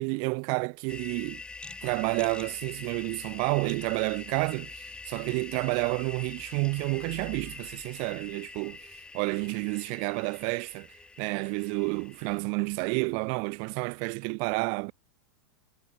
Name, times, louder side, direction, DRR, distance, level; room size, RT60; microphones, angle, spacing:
voice 1, 0.0-1.4 1.8-10.9 11.2-14.9, right 40 dB or more, 45° right, 0.5 m, -30 dB
sound 1, 0.9-12.4, left 3 dB, 10° left, 1.1 m, -44 dB
supercardioid pair, 135°, 10 cm